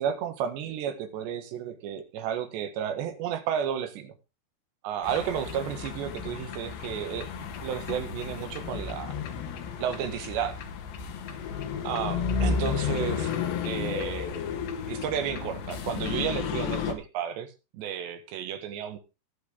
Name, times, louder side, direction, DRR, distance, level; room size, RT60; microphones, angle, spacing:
voice 1, 0.0-4.1 4.8-9.1 9.8-10.6 11.8-13.3 13.7-14.4 14.9-19.0, right 9 dB, 80° right, 9 dB, 3.8 m, -32 dB
sound 1, 5.0-16.9, left 6 dB, 75° left, 3.8 m, -32 dB
20.5 x 7.0 x 3.6 m, 0.29 s
omnidirectional pair, 4.9 m